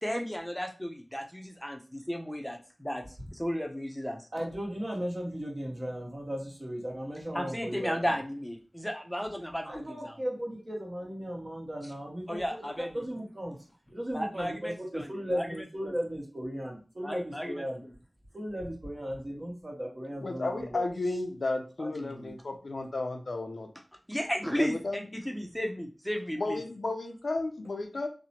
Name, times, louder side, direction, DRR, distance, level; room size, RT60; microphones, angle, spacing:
voice 1, 0.0-3.0 3.3-4.2 7.3-10.2 12.3-12.9 14.1-15.5 15.8-15.9 17.0-17.9 24.1-26.6, equal, 10° left, 2 dB, 0.6 m, -34 dB
voice 2, 4.3-8.2 9.6-13.6 13.9-17.8 18.3-21.2 21.8-22.3, equal, 45° right, -2 dB, 1.1 m, -36 dB
voice 3, 20.2-23.7 24.6-25.0 26.4-28.1, left 2 dB, 80° left, 4 dB, 0.4 m, -33 dB
2.8 x 2.1 x 2.8 m, 0.36 s
wide cardioid pair, 45°, 0 cm